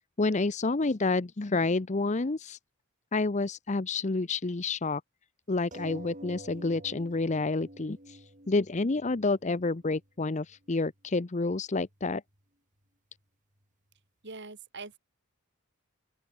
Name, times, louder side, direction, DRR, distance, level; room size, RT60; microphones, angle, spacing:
voice 1, 0.2-2.6 3.1-5.0 5.5-12.2, left 3 dB, 30° left, 0.6 m, -29 dB
sound 1, 5.7-10.7 11.5-11.6 11.9-12.0, right 1 dB, 35° right, 7.6 m, -48 dB
voice 2, 14.2-15.0, right 3 dB, 50° right, 2.8 m, -43 dB
open air
head